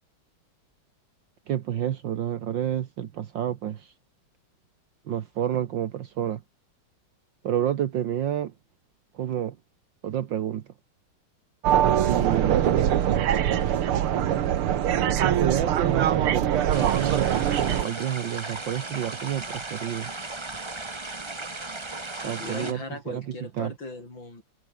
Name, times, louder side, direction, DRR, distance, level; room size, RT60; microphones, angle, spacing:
voice 1, 1.5-3.9 5.1-6.4 7.4-8.5 9.1-9.5 10.0-10.6 11.8-12.6 15.2-20.1 22.2-23.2 23.6-23.7, right 10 dB, 65° right, 1.7 m, -29 dB
sound 1, 11.6-17.8, right 10 dB, 85° right, 2.2 m, -23 dB
voice 2, 12.2-12.6 22.1-24.4, left 2 dB, 60° left, 8.3 m, -39 dB
sound 2, 16.7-22.7, right 3 dB, 15° right, 1.1 m, -36 dB
omnidirectional pair, 2.3 m